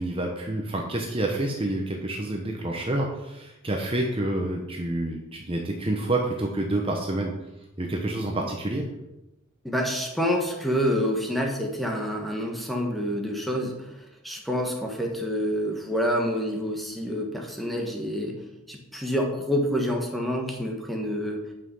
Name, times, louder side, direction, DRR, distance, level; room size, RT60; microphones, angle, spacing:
voice 1, 0.0-7.3 7.8-8.8, right 1 dB, 25° right, 1 dB, 1.0 m, -28 dB
voice 2, 9.6-13.9 14.2-18.4 18.7-21.5, equal, ahead, 1 dB, 1.4 m, -27 dB
9.6 x 5.8 x 5.5 m, 0.92 s
head